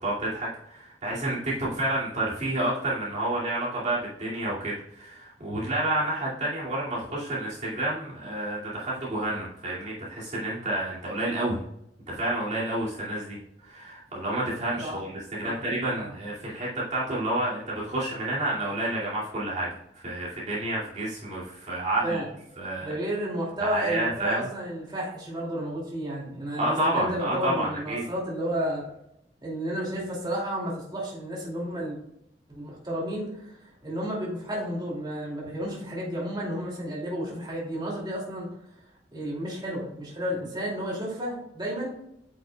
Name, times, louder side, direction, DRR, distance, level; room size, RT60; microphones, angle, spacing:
voice 1, 0.0-11.6 12.1-22.2 22.6-22.9 23.6-24.5 26.6-28.0, right 1 dB, 45° right, -7 dB, 2.4 m, -29 dB
voice 2, 22.8-28.9 29.4-32.0 32.5-33.6 33.8-38.5 39.1-41.9, equal, 25° right, -5 dB, 2.6 m, -32 dB
8.6 x 6.4 x 2.3 m, 0.78 s
head